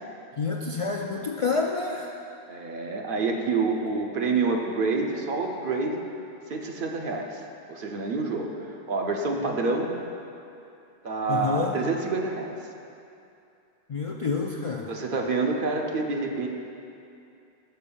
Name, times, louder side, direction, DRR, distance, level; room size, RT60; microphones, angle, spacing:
voice 1, 0.4-2.1 11.3-11.8 13.9-14.9, left 4 dB, 65° left, 0 dB, 0.3 m, -28 dB
voice 2, 2.5-6.0 6.5-7.4 7.7-9.9 11.0-12.5 14.9-16.5, right 3 dB, 60° right, 2 dB, 0.8 m, -27 dB
6.8 x 5.3 x 6.9 m, 2.6 s
omnidirectional pair, 1.1 m